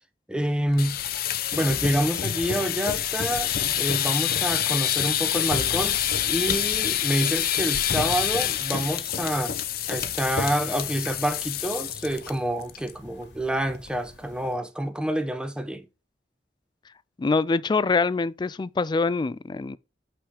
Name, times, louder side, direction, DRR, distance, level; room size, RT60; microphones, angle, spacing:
voice 1, 0.3-1.0 1.5-6.0 6.3-9.6 9.9-15.8, right 1 dB, 5° right, 0.7 m, -27 dB
sound 1, 0.7-12.3 12.6-12.9 13.2-13.3 13.7-14.1, left 10 dB, 55° left, 0.6 m, -27 dB
sound 2, 5.9-14.6, left 1 dB, 80° left, 2.1 m, -52 dB
voice 2, 17.2-19.8, left 4 dB, 25° left, 0.3 m, -24 dB
5.7 x 5.0 x 6.4 m
head